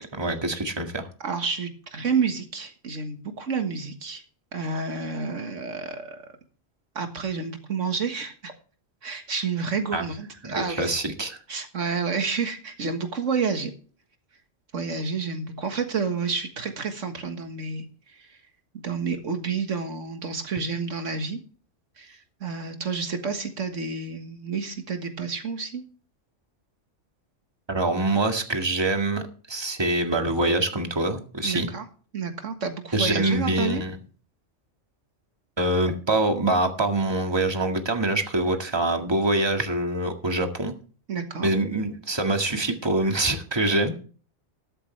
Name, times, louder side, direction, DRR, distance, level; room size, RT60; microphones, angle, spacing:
voice 1, 0.1-1.1 9.9-10.1 10.4-11.4 27.7-31.7 32.9-34.0 35.6-40.8 41.4-43.9, right 2 dB, 20° right, 4 dB, 1.9 m, -25 dB
voice 2, 1.2-4.2 4.5-6.2 7.0-8.5 9.0-11.0 11.5-13.7 14.7-18.4 18.8-21.4 22.0-25.8 31.4-31.9 32.1-33.8 41.1-41.5, right 5 dB, 75° right, 6 dB, 1.9 m, -29 dB
13.5 x 13.5 x 3.3 m, 0.40 s
omnidirectional pair, 1.3 m